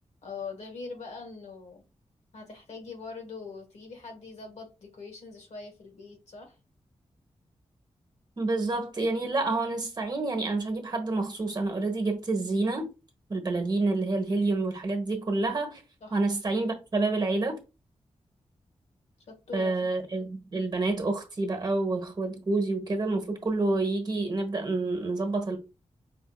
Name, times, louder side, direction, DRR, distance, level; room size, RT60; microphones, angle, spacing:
voice 1, 0.2-1.8 2.3-6.6 16.0-16.2 19.3-20.0, left 4 dB, 85° left, 1.3 m, -42 dB
voice 2, 8.4-12.9 13.3-15.8 16.1-17.6 19.5-25.6, right 2 dB, 40° right, 1.1 m, -28 dB
5.1 x 2.7 x 2.3 m
wide cardioid pair, 100°, 11 cm